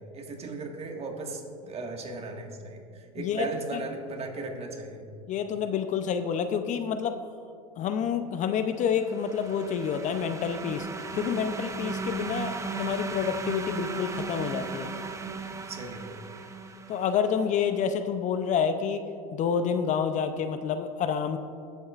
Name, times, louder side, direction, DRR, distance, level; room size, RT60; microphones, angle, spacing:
voice 1, 0.0-5.1 15.3-16.2, right 3 dB, 35° right, 2 dB, 1.7 m, -37 dB
voice 2, 3.2-3.5 3.7-3.8 5.3-7.2 7.8-10.9 11.1-14.9 16.9-19.0 19.3-21.4, left 7 dB, 40° left, 9 dB, 0.6 m, -28 dB
sound 1, 8.8-17.4, right 4 dB, 15° right, 0.8 m, -36 dB
18.0 x 8.0 x 2.5 m, 2.5 s
hypercardioid pair, 90°, 18 cm